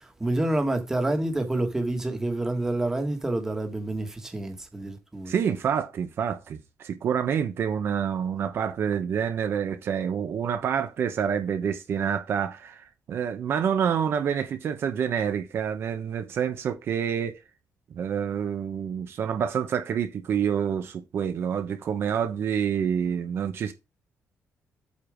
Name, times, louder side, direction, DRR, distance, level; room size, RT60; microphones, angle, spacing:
voice 1, 0.2-5.3, right 2 dB, 10° right, 1.5 m, -28 dB
voice 2, 5.3-17.4 17.9-23.7, right 8 dB, 50° right, 1.0 m, -27 dB
8.5 x 4.6 x 5.0 m
cardioid pair, 175°, 5 cm